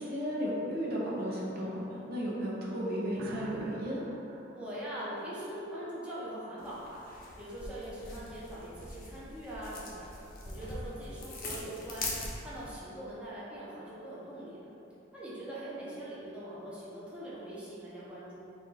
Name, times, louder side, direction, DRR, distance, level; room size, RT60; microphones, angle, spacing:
voice 1, 0.0-4.1, equal, 55° right, -5 dB, 0.7 m, -34 dB
sound 1, 3.1-5.8, right 3 dB, 90° right, 0.4 m, -48 dB
voice 2, 4.5-7.0 7.4-14.6 15.1-18.4, right 1 dB, 5° right, -9 dB, 0.7 m, -42 dB
sound 2, 6.6-12.7, left 2 dB, 50° left, 0.7 m, -42 dB
4.2 x 2.4 x 4.0 m, 2.9 s
head